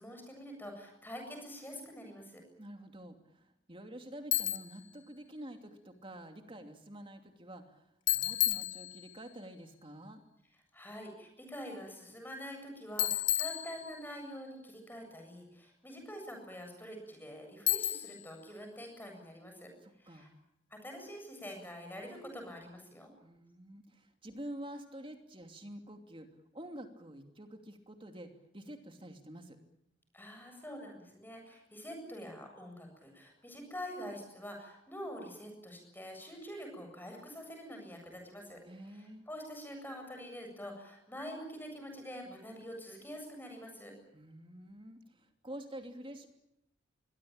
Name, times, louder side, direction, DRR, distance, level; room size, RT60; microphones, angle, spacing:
voice 1, 0.0-2.4 10.7-19.7 20.0-20.3 20.7-23.1 30.1-38.6 38.9-43.9, equal, 10° left, 3 dB, 7.8 m, -46 dB
voice 2, 2.6-7.9 8.1-10.2 19.8-20.3 23.2-26.3 26.5-29.6 38.7-39.2 44.1-46.3, right 1 dB, 25° right, 5 dB, 2.8 m, -48 dB
Bicycle, 4.3-4.8 8.1-9.3 13.0-14.2 17.7-18.3, left 13 dB, 75° left, 1.5 m, -32 dB
24.5 x 22.0 x 9.0 m, 0.81 s
head